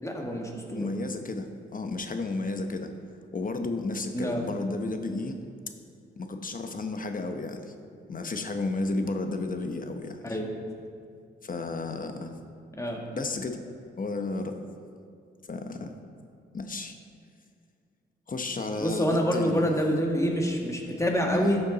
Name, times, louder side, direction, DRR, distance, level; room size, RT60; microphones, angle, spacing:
voice 1, 0.0-0.9 4.1-4.5 10.2-10.5 12.8-13.0 18.8-21.6, equal, 15° left, 0 dB, 1.9 m, -27 dB
voice 2, 0.7-2.9 3.3-5.4 6.2-7.7 8.1-10.2 11.4-12.4 13.1-13.6 14.0-14.6 15.5-15.9 16.5-17.0 18.3-19.7 21.3-21.5, left 3 dB, 40° left, 6 dB, 1.0 m, -32 dB
13.0 x 7.0 x 4.1 m, 2.4 s
cardioid pair, 60°, 21 cm